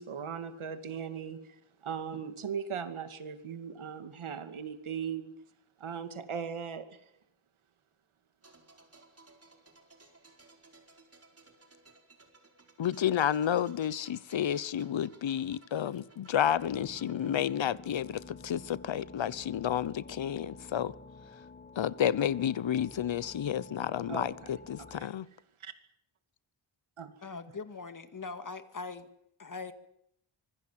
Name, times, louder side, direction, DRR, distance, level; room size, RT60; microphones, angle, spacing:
voice 1, 0.0-1.6 1.8-5.4 5.8-7.0 24.1-24.5 24.8-25.1 25.6-25.7 27.0-27.1, right 7 dB, 75° right, 2.6 m, -38 dB
sound 1, 8.4-19.0 19.3-19.5, right 3 dB, 30° right, 4.5 m, -60 dB
voice 2, 12.8-20.9 21.8-25.3, left 10 dB, 65° left, 1.0 m, -31 dB
sound 2, 16.6-25.1, left 4 dB, 20° left, 2.4 m, -50 dB
voice 3, 27.2-29.1 29.4-29.7, left 4 dB, 40° left, 2.1 m, -41 dB
25.0 x 21.5 x 7.6 m
wide cardioid pair, 120°, 49 cm